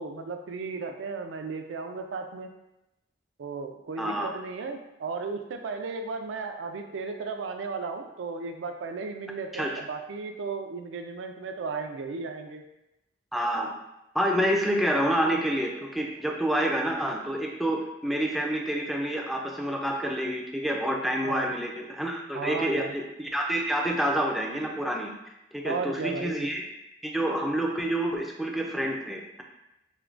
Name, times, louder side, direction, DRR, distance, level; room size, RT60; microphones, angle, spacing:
voice 1, 0.0-2.5 3.4-12.6 21.2-21.5 22.3-22.9 25.6-26.5, right 4 dB, 80° right, 5 dB, 0.4 m, -35 dB
voice 2, 4.0-4.3 9.5-9.7 13.3-13.8 14.1-25.1 25.5-26.6 27.0-29.4, right 1 dB, ahead, 0 dB, 0.3 m, -28 dB
4.4 x 2.1 x 2.4 m, 0.91 s
head